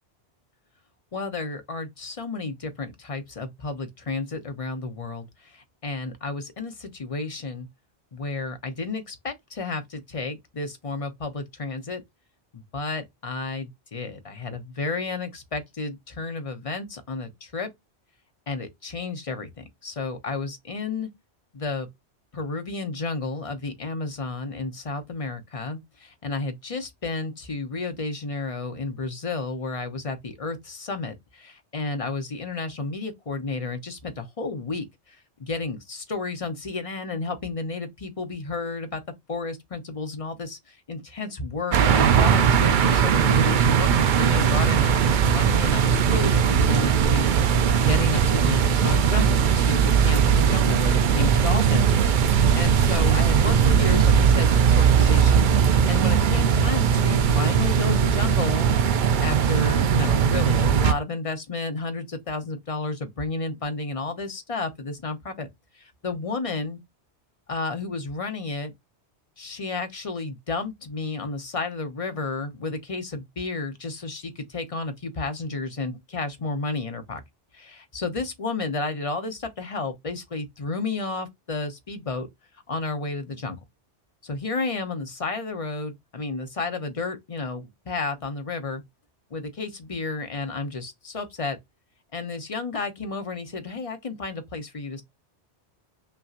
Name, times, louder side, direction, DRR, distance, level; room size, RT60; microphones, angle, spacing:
voice 1, 1.1-7.7 8.1-12.0 12.5-17.7 18.5-21.1 21.5-21.9 22.3-39.0 39.3-58.7 59.2-65.5 65.7-66.8 67.5-68.7 69.4-77.2 77.5-82.3 82.7-83.6 84.2-88.8 89.3-91.6 92.1-95.0, left 3 dB, 35° left, 0.8 m, -32 dB
sound 1, 41.7-60.9, right 7 dB, 60° right, 0.5 m, -19 dB
5.6 x 2.8 x 2.5 m
omnidirectional pair, 1.2 m